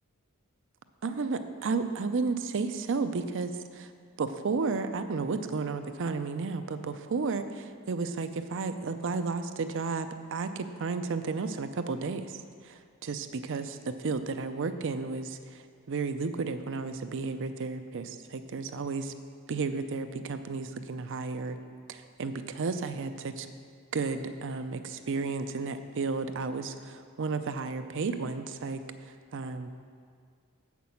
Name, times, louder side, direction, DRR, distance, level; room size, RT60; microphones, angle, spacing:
voice 1, 1.0-3.9 4.2-12.2 12.7-15.4 15.9-19.1 19.5-21.6 21.9-23.5 23.9-28.8 29.3-29.8, right 4 dB, 60° right, 9 dB, 0.5 m, -32 dB
7.6 x 6.0 x 7.1 m, 2.1 s
head